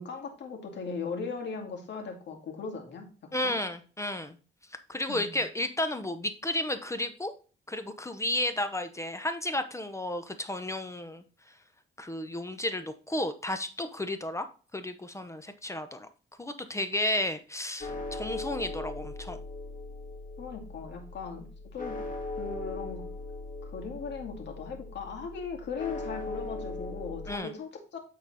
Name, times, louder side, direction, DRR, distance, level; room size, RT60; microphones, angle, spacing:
voice 1, 0.0-3.6 5.1-5.4 20.4-22.0 22.4-23.0 23.6-28.0, left 5 dB, 60° left, 3 dB, 2.3 m, -38 dB
voice 2, 3.3-4.4 4.9-7.3 7.7-11.2 12.0-14.5 14.7-16.1 16.4-19.4 27.3-27.5, left 1 dB, 15° left, 9 dB, 0.9 m, -32 dB
sound 1, 17.8-27.4, left 2 dB, 40° left, 1.8 m, -39 dB
8.6 x 4.2 x 4.1 m, 0.36 s
cardioid pair, 90°, 20 cm